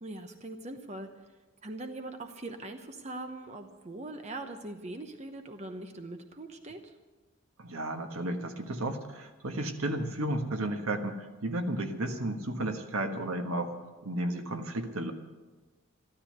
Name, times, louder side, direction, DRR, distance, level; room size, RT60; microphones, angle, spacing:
voice 1, 0.0-1.1 1.6-6.8, right 2 dB, 30° right, 6 dB, 0.9 m, -41 dB
voice 2, 7.6-13.8 14.0-15.1, right 1 dB, 80° right, 5 dB, 1.4 m, -33 dB
14.0 x 13.0 x 6.6 m, 1.2 s
head